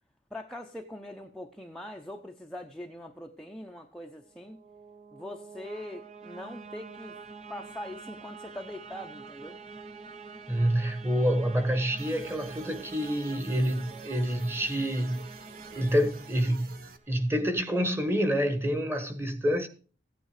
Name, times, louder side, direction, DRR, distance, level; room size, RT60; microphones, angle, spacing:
voice 1, 0.3-4.6 5.1-7.2 7.5-9.6, left 1 dB, 5° left, 0.8 m, -42 dB
sound 1, 4.2-17.2, right 4 dB, 35° right, 1.0 m, -46 dB
voice 2, 10.5-15.3 15.7-16.8 17.1-19.7, equal, 15° right, 1.5 m, -27 dB
sound 2, 12.0-17.0, right 3 dB, 50° right, 1.3 m, -50 dB
15.5 x 9.3 x 5.0 m
head